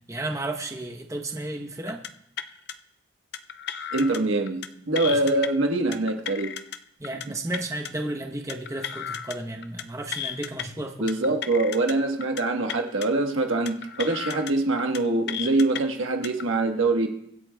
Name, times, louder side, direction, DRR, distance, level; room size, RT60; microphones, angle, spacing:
voice 1, 0.1-2.0 5.0-5.2 7.0-11.1, right 1 dB, 15° right, 4 dB, 0.7 m, -33 dB
sound 1, 1.9-2.1 2.4-2.7 3.3-4.2 4.5-4.7 5.0-5.5 5.9-6.8 7.0-7.3 7.5-7.9 8.5-9.4 9.6-9.8 10.1-10.6 11.1-11.9 12.2-12.4 12.7-13.1 13.7-14.5 14.8-15.0 15.3-15.8 16.2-16.4, left 9 dB, 55° left, 0.4 m, -34 dB
voice 2, 3.9-6.5 7.3-7.4 11.0-17.1, right 2 dB, 85° right, 3 dB, 1.2 m, -24 dB
23.5 x 8.1 x 2.2 m, 0.73 s
head